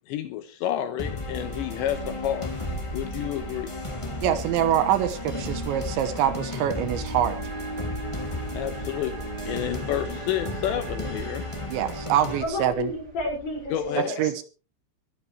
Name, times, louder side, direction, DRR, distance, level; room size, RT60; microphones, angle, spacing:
voice 1, 0.1-2.5 2.9-3.7 8.5-9.2 9.5-11.4 13.7-14.1, left 11 dB, 75° left, 3.1 m, -30 dB
sound 1, 1.0-12.4, left 2 dB, 20° left, 0.8 m, -34 dB
sound 2, 1.4-13.9, right 3 dB, 20° right, 3.6 m, -41 dB
voice 2, 4.2-7.4 11.7-12.9 13.9-14.4, right 10 dB, 75° right, 3.3 m, -25 dB
sound 3, 7.3-12.2, right 6 dB, 60° right, 3.7 m, -43 dB
voice 3, 12.4-14.3, left 2 dB, 50° left, 7.5 m, -31 dB
23.0 x 12.0 x 3.2 m
omnidirectional pair, 5.5 m